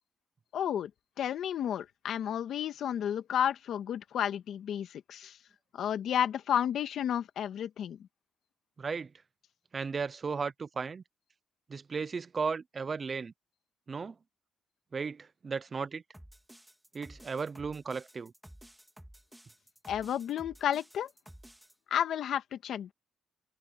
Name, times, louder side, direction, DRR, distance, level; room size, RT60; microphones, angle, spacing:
voice 1, 0.5-0.9 1.2-5.4 5.7-8.0 19.9-21.1 21.9-22.9, left 9 dB, 70° left, 1.7 m, -32 dB
voice 2, 8.8-9.1 9.7-11.0 11.7-13.3 13.9-14.2 14.9-16.0 16.9-18.3, right 5 dB, 35° right, 0.7 m, -35 dB
sound 1, 16.1-21.7, equal, 5° right, 3.3 m, -53 dB
cardioid pair, 90°, 0 cm